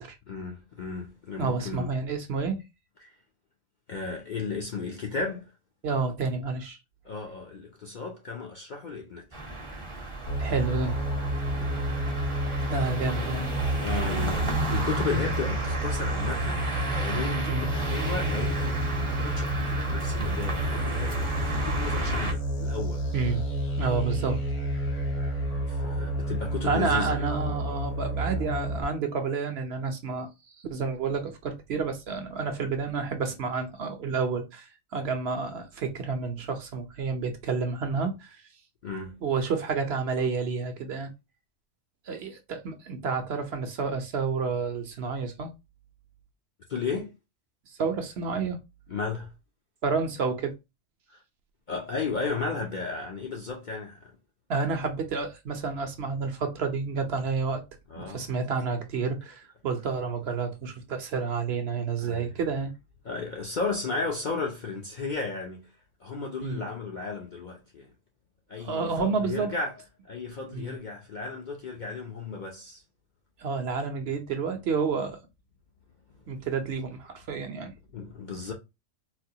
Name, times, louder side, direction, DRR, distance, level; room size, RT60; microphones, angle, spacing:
voice 1, 0.3-1.9 3.0-3.1 3.9-5.5 7.0-9.4 11.5-11.8 12.8-13.1 13.8-23.1 25.7-27.3 38.8-39.2 46.7-47.2 48.9-49.3 51.1-51.2 51.7-54.1 57.9-58.3 62.0-62.3 63.0-67.9 68.5-69.8 70.1-72.8 76.1-76.2 77.9-78.5, left 4 dB, 55° left, 0.5 m, -34 dB
voice 2, 1.4-2.6 5.8-6.8 10.4-11.0 12.7-13.5 17.5-17.7 23.1-23.5 23.8-24.4 26.6-30.3 30.6-38.4 39.2-41.1 42.1-45.5 47.7-48.6 49.8-50.5 54.5-57.6 58.0-62.7 66.4-66.6 68.6-69.5 70.5-70.8 73.4-75.2 76.3-77.7, right 5 dB, 60° right, 0.8 m, -30 dB
sound 1, 9.3-22.3, right 2 dB, 30° right, 0.7 m, -33 dB
sound 2, 10.3-28.8, right 1 dB, 70° left, 1.5 m, -30 dB
4.1 x 2.2 x 2.7 m
omnidirectional pair, 1.3 m